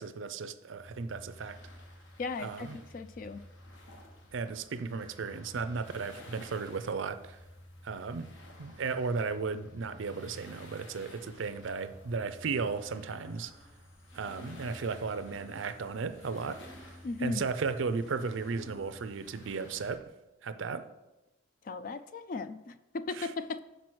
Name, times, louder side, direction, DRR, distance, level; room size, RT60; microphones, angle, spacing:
voice 1, 0.0-1.6 2.4-2.8 4.3-7.4 7.8-8.3 8.6-13.5 14.1-16.6 17.2-20.1 20.4-20.9 23.2-23.3, right 4 dB, 80° right, 0.5 m, -35 dB
sound 1, 0.8-20.0, left 1 dB, 80° left, 1.1 m, -52 dB
voice 2, 2.2-3.4 17.0-17.4 21.6-23.6, left 3 dB, 45° left, 0.3 m, -37 dB
sound 2, 13.2-19.4, equal, 15° left, 0.7 m, -57 dB
5.9 x 5.1 x 6.1 m
head